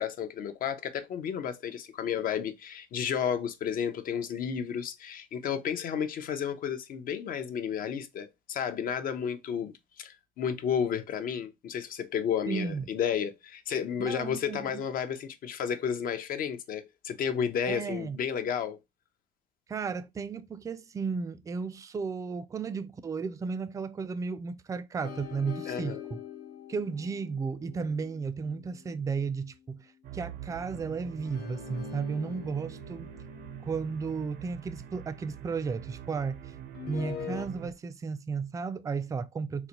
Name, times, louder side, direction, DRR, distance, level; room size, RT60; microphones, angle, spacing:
voice 1, 0.0-18.8 25.7-26.0, left 8 dB, 55° left, 0.6 m, -32 dB
voice 2, 12.5-12.8 14.0-14.8 17.7-18.2 19.7-26.2 26.7-29.9 30.1-33.1 33.7-36.5 36.9-39.7, right 5 dB, 20° right, 0.3 m, -34 dB
sound 1, 25.0-29.6 31.2-35.4 36.7-37.5, left 8 dB, 80° left, 1.1 m, -44 dB
sound 2, 30.0-37.7, right 11 dB, 70° right, 0.5 m, -45 dB
3.9 x 2.1 x 2.8 m
cardioid pair, 110°, 17 cm